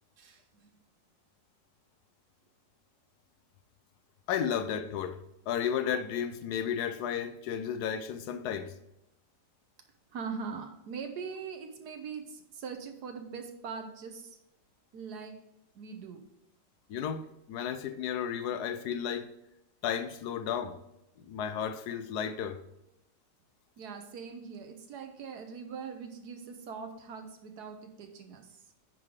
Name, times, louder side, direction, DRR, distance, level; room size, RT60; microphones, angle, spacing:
voice 1, 0.2-0.8 10.1-14.4 14.9-15.4 15.7-16.2 23.8-28.6, right 5 dB, 65° right, 1.4 m, -42 dB
voice 2, 4.3-8.7 16.9-19.3 19.8-20.8 21.2-22.6, left 8 dB, 70° left, 1.1 m, -33 dB
9.6 x 3.9 x 4.7 m
omnidirectional pair, 2.0 m